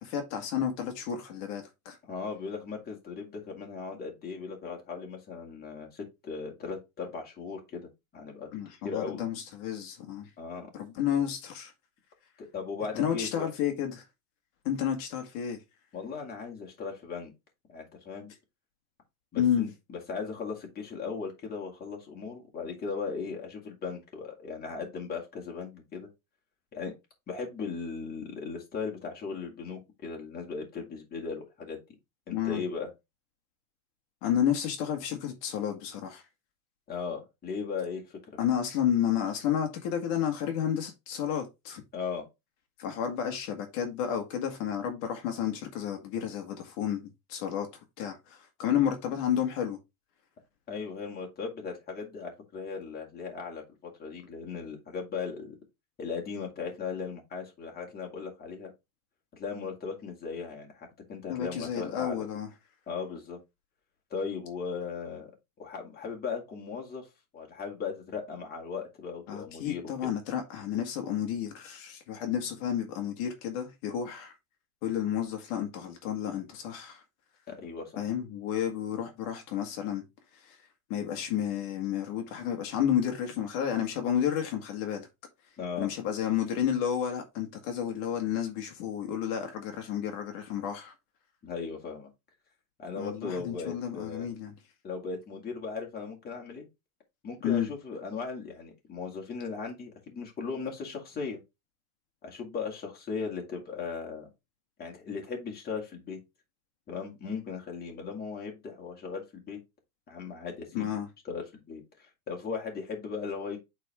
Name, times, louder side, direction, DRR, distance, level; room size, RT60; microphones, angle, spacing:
voice 1, 0.0-2.0 8.5-10.3 10.7-11.7 12.9-14.0 14.7-15.6 19.4-19.7 32.3-32.6 34.2-36.2 38.4-41.8 42.8-47.7 48.0-49.8 61.3-62.5 69.3-74.3 74.8-77.0 78.0-80.0 80.3-80.6 80.9-85.1 85.8-90.9 93.0-94.5 97.4-97.7 110.7-111.1, left 9 dB, 55° left, 1.8 m, -31 dB
voice 2, 2.0-8.5 8.8-9.2 10.4-10.7 12.4-13.5 15.9-17.3 17.7-18.3 19.3-26.1 26.7-26.9 27.3-31.8 32.3-32.9 36.9-38.2 41.9-42.3 50.7-53.6 54.0-55.6 56.0-58.7 59.3-62.3 62.9-63.4 64.1-65.3 65.6-67.1 67.3-70.1 77.5-78.0 85.6-85.9 91.4-92.1 92.8-94.3 94.8-96.7 97.2-101.4 102.2-104.3 104.8-106.2 106.9-109.6 110.1-110.9 111.2-113.6, left 5 dB, 20° left, 2.4 m, -37 dB
8.5 x 4.2 x 3.6 m
supercardioid pair, 155°, 45 cm